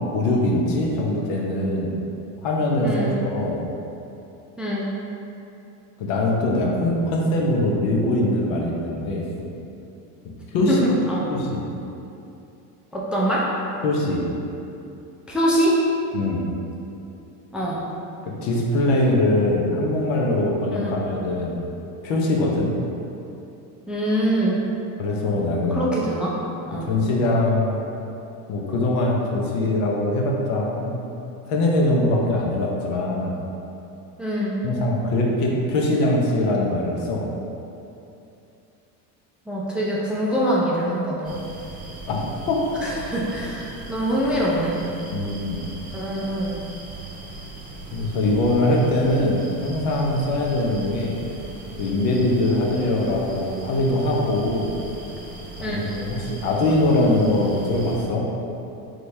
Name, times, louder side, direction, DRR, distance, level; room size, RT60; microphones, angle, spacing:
voice 1, 0.1-2.0 2.4-3.6 6.0-9.3 10.2-10.8 11.3-11.6 13.8-14.2 16.1-16.5 18.2-21.6 22.0-22.7 25.0-25.8 26.8-27.8 28.5-31.0 31.5-33.4 34.6-37.3 42.1-42.2 42.5-42.6 45.1-45.6 47.9-51.2 51.8-54.7 55.6-58.3, left 1 dB, 70° left, -1 dB, 0.9 m, -22 dB
voice 2, 10.7-11.3 12.9-13.4 15.3-15.8 17.5-17.8 20.7-21.0 23.9-24.6 25.7-26.4 26.7-26.9 34.2-34.5 39.5-41.4 42.8-44.8 45.9-46.6 55.6-55.8, equal, ahead, -6 dB, 0.4 m, -24 dB
sound 1, 41.2-58.0, right 3 dB, 15° right, 1.0 m, -38 dB
3.8 x 3.2 x 3.3 m, 2.8 s
supercardioid pair, 95°, 47 cm